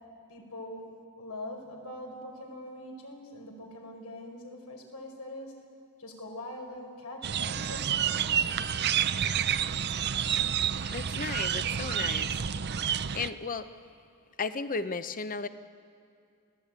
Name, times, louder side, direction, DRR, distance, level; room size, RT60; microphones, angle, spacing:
voice 1, 0.3-0.8 1.1-5.5 6.0-8.5, left 1 dB, 90° left, 1 dB, 4.9 m, -43 dB
sound 1, 7.2-13.3, right 8 dB, 50° right, 0.6 m, -29 dB
voice 2, 10.9-12.3 13.1-13.7 14.4-15.5, left 4 dB, 40° left, 12 dB, 0.8 m, -34 dB
28.0 x 17.5 x 9.0 m, 2.4 s
head